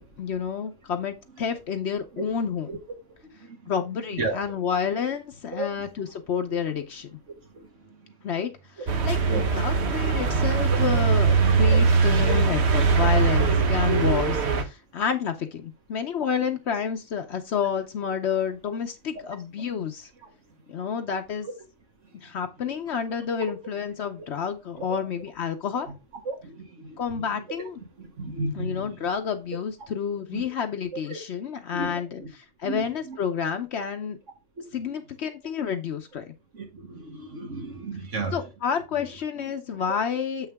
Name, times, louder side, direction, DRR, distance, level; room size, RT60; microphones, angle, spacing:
voice 1, 0.0-2.7 3.7-7.1 8.2-8.5 9.0-20.1 20.7-21.5 22.1-25.9 27.0-27.7 28.6-34.2 34.7-36.3 38.3-40.5, left 7 dB, 65° left, 1.0 m, -29 dB
voice 2, 3.2-3.7 4.2-4.4 5.5-5.9 7.3-8.2 8.8-8.9 9.3-9.6 11.5-11.8 12.2-12.3 20.2-20.8 22.1-22.3 23.5-23.6 24.8-25.0 26.3-27.4 28.0-29.0 30.3-30.5 31.1-31.2 31.7-32.3 32.6-33.2 34.6-34.7 36.5-38.5 38.9-39.0 39.7-39.8, right 2 dB, 80° right, 2.2 m, -35 dB
sound 1, 8.9-14.6, right 5 dB, 60° right, 1.3 m, -21 dB
7.3 x 5.7 x 3.4 m
omnidirectional pair, 1.3 m